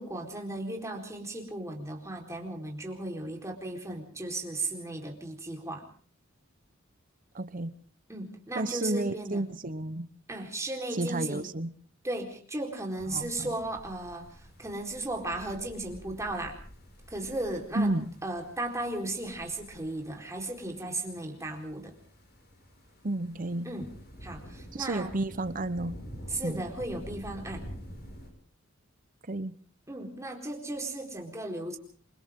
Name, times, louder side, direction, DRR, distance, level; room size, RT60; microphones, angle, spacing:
voice 1, 0.0-5.8 8.1-9.5 10.3-11.6 12.0-16.6 17.1-17.9 18.2-21.9 23.6-23.9 24.2-25.1 26.3-27.6 29.9-31.8, right 2 dB, 15° right, 2 dB, 4.3 m, -36 dB
voice 2, 7.3-7.7 8.5-10.1 10.9-11.7 13.1-13.5 17.7-18.1 23.0-23.7 24.7-25.9 26.4-26.6 29.3-29.5, right 2 dB, 40° right, 13 dB, 1.0 m, -31 dB
sound 1, 13.0-28.3, equal, 50° left, 6.2 m, -48 dB
28.0 x 24.5 x 3.8 m, 0.44 s
head